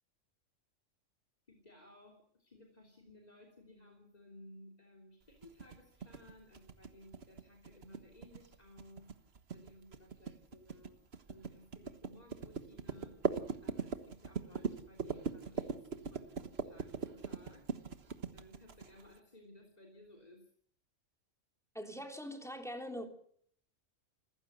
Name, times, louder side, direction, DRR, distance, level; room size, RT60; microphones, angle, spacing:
voice 1, 1.5-9.1 9.5-13.3 13.6-17.9 18.3-20.5, left 1 dB, 30° left, 3.5 m, -58 dB
sound 1, 5.4-19.2, right 5 dB, 55° right, 1.6 m, -40 dB
voice 2, 21.7-23.1, equal, ahead, 3.3 m, -42 dB
27.5 x 15.0 x 7.9 m
omnidirectional pair, 1.3 m